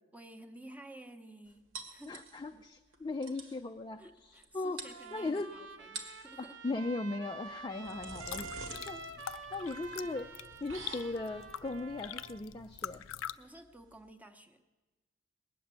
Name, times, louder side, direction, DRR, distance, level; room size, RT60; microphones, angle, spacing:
voice 1, 0.1-2.2 4.0-6.6 13.4-14.6, right 1 dB, 10° right, 6 dB, 0.8 m, -53 dB
sound 1, 1.7-2.6 2.9-3.0 3.2-3.6 4.4-4.5 4.8-5.4 5.8-6.3 7.5-14.1, right 3 dB, 90° right, 1.9 m, -48 dB
voice 2, 2.1-4.0 4.3-4.8 5.1-5.5 6.4-9.0 9.5-10.3 10.6-13.0, left 2 dB, 20° left, 5 dB, 0.4 m, -38 dB
Trumpet, 4.8-12.4, right 4 dB, 65° right, 1.1 m, -48 dB
sound 2, 8.0-13.4, left 10 dB, 85° left, 0.4 m, -45 dB
20.0 x 7.3 x 9.5 m, 1.2 s
head